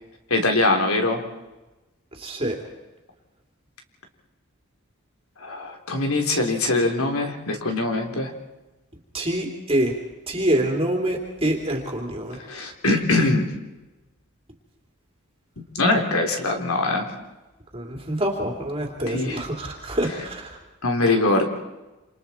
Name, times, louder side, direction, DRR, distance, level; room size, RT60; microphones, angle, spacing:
voice 1, 0.3-1.2 5.4-8.3 12.5-13.5 15.8-17.1 19.1-19.4 20.8-21.5, left 2 dB, 85° left, 3 dB, 3.6 m, -22 dB
voice 2, 2.1-2.6 9.1-9.9 10.3-12.4 17.7-20.6, right 1 dB, 25° right, 1 dB, 2.9 m, -26 dB
27.5 x 27.5 x 4.4 m, 1.1 s
head